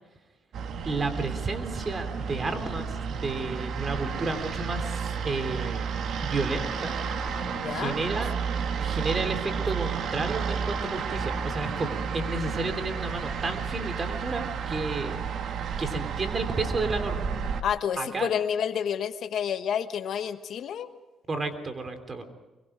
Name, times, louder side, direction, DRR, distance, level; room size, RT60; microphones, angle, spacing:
sound 1, 0.5-17.6, right 6 dB, 65° right, 1.7 m, -31 dB
voice 1, 0.8-5.9 6.2-6.9 7.7-8.4 8.8-15.2 15.8-17.3 18.0-18.3 21.3-22.2, right 3 dB, 35° right, 8 dB, 3.3 m, -32 dB
voice 2, 7.5-8.0 17.6-20.9, left 8 dB, 70° left, 9 dB, 1.3 m, -29 dB
24.5 x 23.0 x 5.0 m, 1.1 s
cardioid pair, 90°, 0 cm